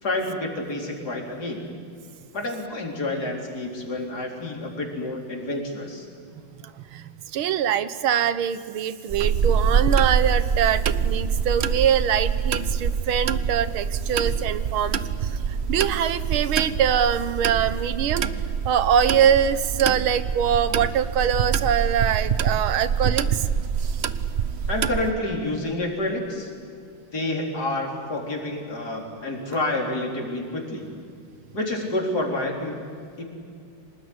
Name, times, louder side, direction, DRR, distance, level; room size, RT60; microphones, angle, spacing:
voice 1, 0.0-1.7 2.3-6.1 24.7-26.5 27.1-30.9 31.5-32.8 33.2-33.3, left 2 dB, 50° left, 0 dB, 4.6 m, -28 dB
voice 2, 6.6-15.4 15.7-18.3 18.7-23.5, right 8 dB, 90° right, 13 dB, 1.9 m, -23 dB
sound 1, 9.1-25.1, right 6 dB, 70° right, 0.6 m, -25 dB
26.0 x 19.5 x 9.7 m, 2.4 s
omnidirectional pair, 2.2 m